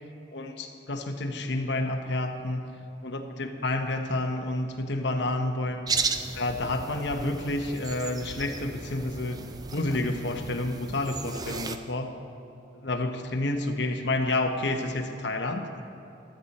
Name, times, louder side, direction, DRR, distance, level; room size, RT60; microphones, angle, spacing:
voice 1, 0.3-2.7 3.0-5.9 6.3-9.4 9.7-12.2 12.8-15.8, left 2 dB, 65° left, 5 dB, 1.0 m, -29 dB
sound 1, 5.9-11.8, right 5 dB, 20° right, 0.4 m, -35 dB
15.5 x 12.0 x 4.2 m, 2.7 s
head